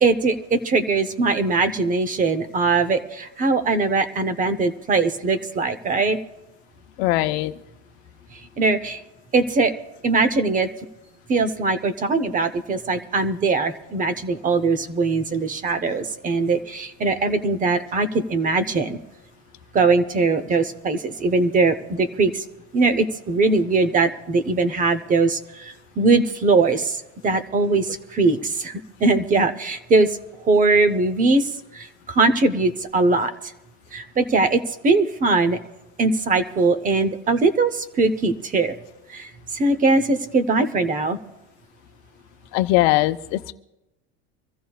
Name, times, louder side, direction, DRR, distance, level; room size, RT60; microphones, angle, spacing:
voice 1, 0.0-6.2 8.3-9.0 9.3-9.7 10.0-10.7 11.3-19.0 19.7-22.4 22.7-33.3 33.9-35.6 36.0-38.7 39.1-41.2, right 3 dB, 25° right, 11 dB, 0.9 m, -21 dB
voice 2, 7.0-7.6 42.5-43.5, left 17 dB, 75° left, 10 dB, 0.8 m, -20 dB
25.0 x 14.5 x 2.4 m, 0.92 s
cardioid pair, 140°, 33 cm